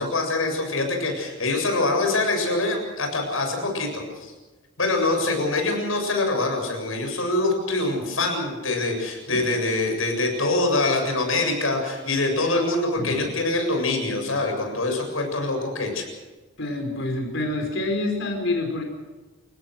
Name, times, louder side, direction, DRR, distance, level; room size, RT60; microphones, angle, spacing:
voice 1, 0.0-4.3 4.8-16.0, left 2 dB, 85° left, 3 dB, 7.6 m, -24 dB
voice 2, 16.6-18.8, left 2 dB, 65° left, 2 dB, 5.3 m, -27 dB
29.5 x 17.5 x 6.4 m, 1.2 s
head